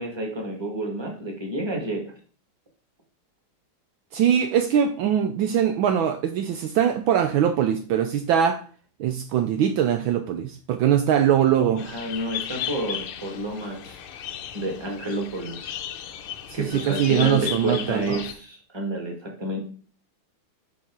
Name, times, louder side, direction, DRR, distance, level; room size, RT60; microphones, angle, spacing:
voice 1, 0.0-2.1 11.8-14.0 14.5-15.8 16.5-19.6, right 1 dB, 15° right, 1.7 m, -30 dB
voice 2, 4.1-8.6 9.0-11.9 16.5-18.2, right 9 dB, 75° right, 1.3 m, -22 dB
sound 1, 11.8-18.3, left 10 dB, 85° left, 1.7 m, -35 dB
6.8 x 5.2 x 4.7 m
omnidirectional pair, 2.3 m